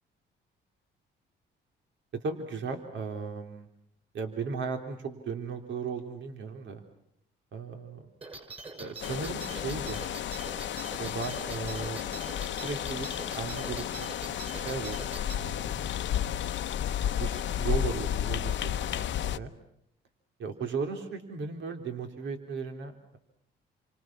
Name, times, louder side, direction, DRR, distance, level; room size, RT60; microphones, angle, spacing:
voice 1, 2.2-3.7 4.1-6.8 7.5-8.1 8.8-10.0 11.0-13.1 13.4-15.9 17.0-19.5 20.4-23.2, right 5 dB, 70° right, 5 dB, 3.4 m, -36 dB
sound 1, 8.2-15.3, right 3 dB, 30° right, 6.9 m, -44 dB
sound 2, 9.0-19.4, left 10 dB, 70° left, 0.9 m, -32 dB
30.0 x 25.0 x 6.1 m, 0.74 s
cardioid pair, 90°, 20 cm